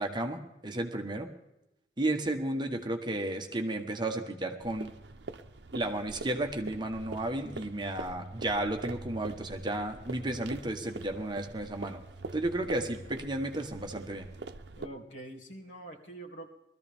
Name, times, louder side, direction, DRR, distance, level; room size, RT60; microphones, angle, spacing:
voice 1, 0.0-1.3 2.0-4.9 5.7-12.0 12.3-14.3, right 1 dB, 25° right, 4 dB, 1.1 m, -33 dB
sound 1, 4.6-14.9, right 3 dB, 70° right, 0.8 m, -44 dB
voice 2, 14.8-16.5, right 1 dB, 85° left, 0 dB, 2.3 m, -45 dB
20.5 x 14.0 x 3.5 m, 0.93 s
head